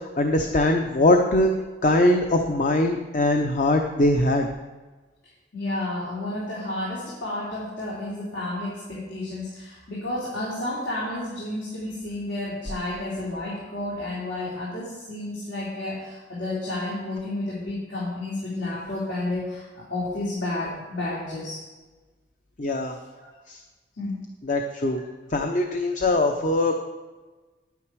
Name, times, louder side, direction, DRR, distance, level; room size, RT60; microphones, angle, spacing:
voice 1, 0.2-1.5 1.8-4.5 22.6-23.0 23.5-23.6 24.5-25.0 25.3-26.8, left 1 dB, 45° left, 4 dB, 0.7 m, -21 dB
voice 2, 5.5-21.6 23.2-23.3 23.9-24.2, left 2 dB, 85° left, -8 dB, 3.5 m, -31 dB
10.0 x 9.3 x 4.7 m, 1.3 s
head